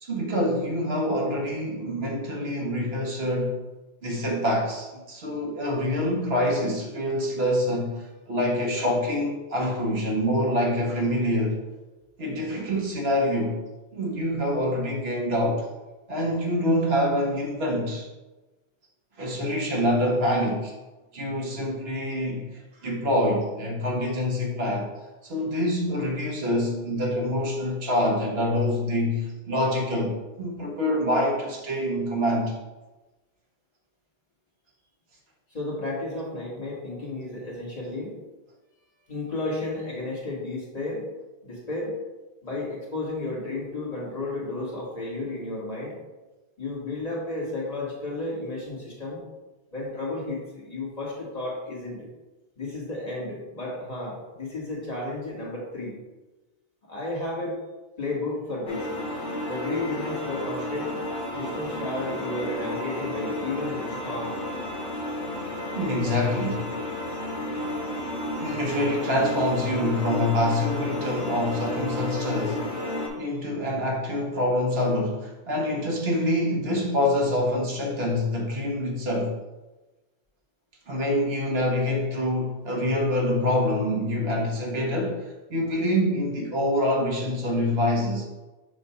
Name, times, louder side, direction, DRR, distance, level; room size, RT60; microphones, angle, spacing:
voice 1, 0.0-3.6 4.0-11.6 12.2-13.6 13.9-15.7 16.1-18.1 19.2-20.7 21.1-22.5 22.8-24.9 25.2-32.6 65.7-66.7 68.4-72.7 73.2-79.4 80.9-88.3, left 1 dB, 70° right, -1 dB, 1.4 m, -26 dB
voice 2, 35.5-38.2 39.1-41.1 41.4-42.0 42.4-46.0 46.6-49.2 49.7-52.1 52.6-56.0 56.9-57.6 58.0-58.9 59.5-61.0 61.3-64.4, left 2 dB, 35° left, -5 dB, 1.7 m, -32 dB
sound 1, 58.7-73.1, left 1 dB, 85° left, 1.5 m, -32 dB
6.6 x 2.6 x 5.6 m, 1.1 s
omnidirectional pair, 1.1 m